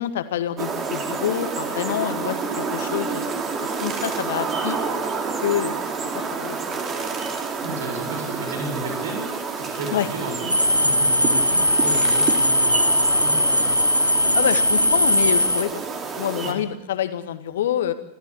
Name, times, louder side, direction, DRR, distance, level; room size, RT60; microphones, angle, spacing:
voice 1, 0.0-3.3 3.6-4.8 5.4-6.8 9.9-10.1 14.3-15.8 16.2-17.9, left 10 dB, 60° left, 10 dB, 1.9 m, -27 dB
sound 1, 0.6-16.5, right 5 dB, 25° right, 3.3 m, -29 dB
voice 2, 7.6-9.2 9.6-13.7 16.4-16.6, right 2 dB, 60° right, 3 dB, 7.4 m, -33 dB
sound 2, 10.5-15.6, left 1 dB, 90° left, 1.2 m, -19 dB
28.0 x 14.5 x 8.7 m, 0.83 s
figure-of-eight pair, 90°, 0 cm